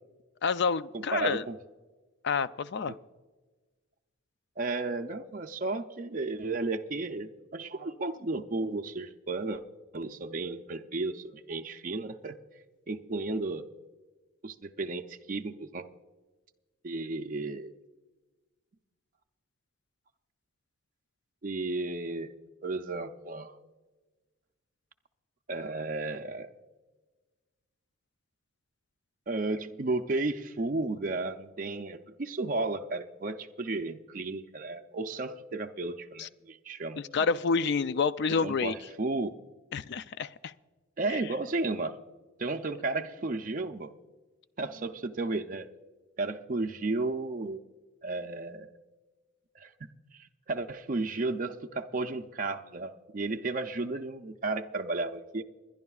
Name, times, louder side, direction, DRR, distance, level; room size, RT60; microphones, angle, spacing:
voice 1, 0.4-1.4 2.2-2.9 36.2-36.3 37.0-38.7 39.7-40.5 41.1-41.2, left 5 dB, 55° left, 15 dB, 0.4 m, -28 dB
voice 2, 0.9-1.6 2.9-3.0 4.6-9.6 9.9-12.4 12.9-13.7 14.4-15.9 16.8-17.7 21.4-22.3 22.6-23.6 25.5-26.5 29.3-37.0 38.4-39.3 41.0-42.0 42.4-43.9 44.6-45.7 46.2-47.6 48.0-48.7 49.6-49.7 50.1-55.4, right 3 dB, 40° right, 5 dB, 0.5 m, -33 dB
29.0 x 10.5 x 2.4 m, 1.3 s
head